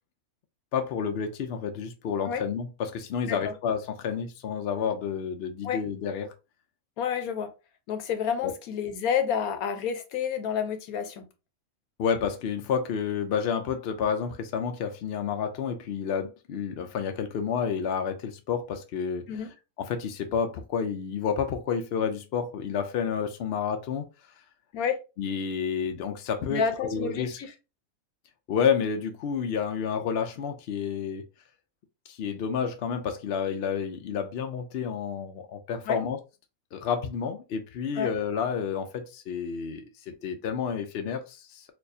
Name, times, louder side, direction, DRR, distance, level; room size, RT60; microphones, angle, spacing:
voice 1, 0.7-6.3 8.4-8.5 12.0-19.3 19.8-24.1 25.2-27.4 28.5-31.2 32.1-36.2 36.7-41.7, left 7 dB, 65° left, 0.6 m, -30 dB
voice 2, 7.0-7.5 7.9-11.2 19.3-19.5 24.7-25.0 26.5-27.5 35.9-36.0 37.9-38.1, left 7 dB, 80° left, 1.1 m, -29 dB
4.3 x 2.4 x 2.6 m
omnidirectional pair, 1.5 m